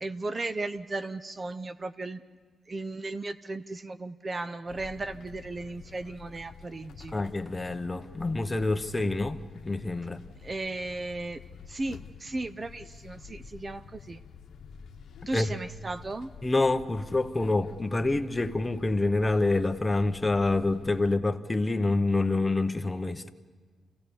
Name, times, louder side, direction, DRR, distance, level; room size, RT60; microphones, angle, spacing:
voice 1, 0.0-2.2 2.7-7.1 10.4-11.4 11.7-14.2 15.3-16.3, right 2 dB, 35° right, 0.7 m, -35 dB
sound 1, 4.7-21.2, left 6 dB, 85° left, 0.9 m, -48 dB
voice 2, 7.1-9.4 9.6-10.2 15.3-15.5 16.4-23.3, left 2 dB, 20° left, 0.9 m, -27 dB
27.0 x 16.5 x 7.0 m
cardioid pair, 85°, 0 cm